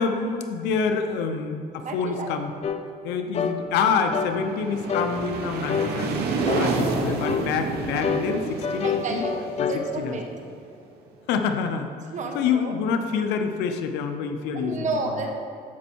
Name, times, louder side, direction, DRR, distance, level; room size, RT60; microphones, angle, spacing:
voice 1, 0.0-2.5 3.0-6.2 6.5-9.2 9.6-9.7 10.0-10.2 11.3-11.9 12.3-14.9, left 6 dB, 90° left, 6 dB, 0.9 m, -26 dB
voice 2, 1.8-2.4 6.6-7.1 8.2-8.3 8.8-10.3 12.1-12.7 14.5-15.3, right 3 dB, 45° right, 3 dB, 1.3 m, -31 dB
sound 1, 2.6-2.8 3.3-3.6 4.1-4.4 4.9-5.1 5.7-5.9 6.5-6.7 7.2-7.5 8.0-9.8, left 7 dB, 40° left, 0.7 m, -27 dB
sound 2, 4.1-10.8, right 4 dB, 70° right, 1.3 m, -30 dB
13.5 x 5.4 x 4.6 m, 2.4 s
cardioid pair, 110°, 17 cm